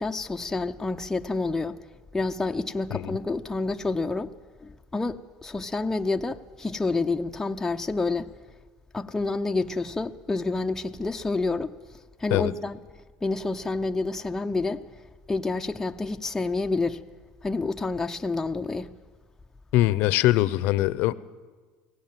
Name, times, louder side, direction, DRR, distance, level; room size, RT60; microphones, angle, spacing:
voice 1, 0.0-1.8 2.1-4.3 4.6-8.3 8.9-11.7 12.2-12.8 13.2-14.8 15.3-17.0 17.4-18.9, left 3 dB, 10° left, 0.8 m, -28 dB
voice 2, 19.7-21.1, left 16 dB, 65° left, 0.8 m, -22 dB
23.0 x 17.5 x 7.6 m
supercardioid pair, 95°, 3 cm